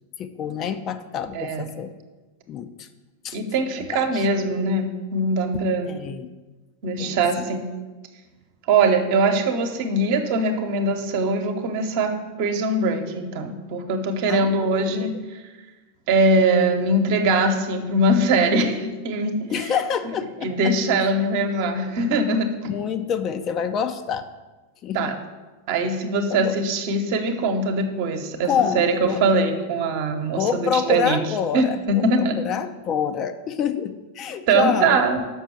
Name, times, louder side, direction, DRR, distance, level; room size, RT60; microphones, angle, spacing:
voice 1, 0.2-1.9 2.5-2.9 3.2-3.4 3.8-4.3 5.9-6.3 7.0-7.5 14.3-15.1 19.5-20.7 22.7-24.3 24.8-25.2 26.3-26.5 28.4-29.4 30.4-35.1, left 7 dB, 30° left, 9 dB, 0.5 m, -27 dB
voice 2, 3.3-5.9 6.8-7.7 8.7-12.1 12.4-15.4 16.1-19.7 20.4-22.7 24.9-25.1 25.7-28.5 28.7-31.2 31.5-32.4 34.5-35.2, right 2 dB, 50° right, 6 dB, 1.0 m, -22 dB
6.1 x 6.1 x 6.9 m, 1.2 s
figure-of-eight pair, 90°, 0 cm